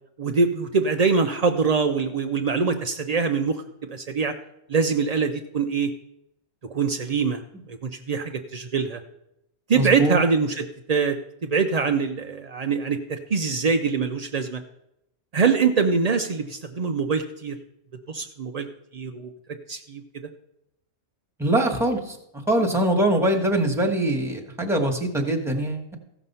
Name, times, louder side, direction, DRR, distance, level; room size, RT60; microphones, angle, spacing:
voice 1, 0.2-3.6 3.9-4.3 4.7-5.9 6.7-7.4 7.7-9.0 9.7-11.2 11.4-14.6 15.3-17.6 18.1-18.7 18.9-19.3 19.7-20.0, right 5 dB, 75° right, 5 dB, 0.3 m, -23 dB
voice 2, 9.7-10.2 21.4-22.2 22.5-25.9, right 1 dB, ahead, 1 dB, 1.2 m, -23 dB
15.0 x 6.0 x 5.5 m, 0.81 s
omnidirectional pair, 1.5 m